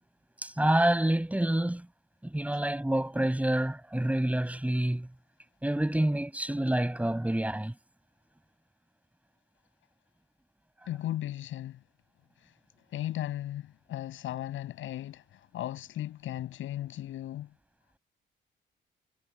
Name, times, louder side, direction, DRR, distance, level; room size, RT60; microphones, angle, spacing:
voice 1, 0.4-1.9 2.2-5.1 5.6-7.7, right 1 dB, 5° right, 7.3 m, -27 dB
voice 2, 10.9-11.8 12.4-12.5 12.9-17.5, left 13 dB, 80° left, 7.8 m, -36 dB
cardioid pair, 90°, 20 cm